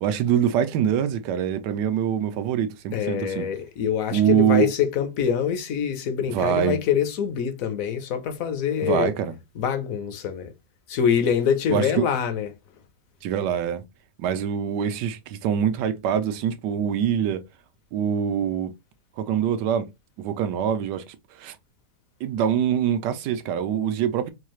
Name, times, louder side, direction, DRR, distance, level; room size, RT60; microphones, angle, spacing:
voice 1, 0.0-3.5 4.1-4.7 6.3-6.8 8.8-9.3 11.7-12.1 13.2-13.8 14.2-17.4 17.9-18.7 19.2-19.9 20.2-21.6 22.2-24.3, right 8 dB, 85° right, 1.2 m, -24 dB
voice 2, 2.9-9.1 9.6-10.5 10.9-12.5, left 8 dB, 65° left, 1.0 m, -25 dB
4.5 x 2.4 x 3.0 m
omnidirectional pair, 1.8 m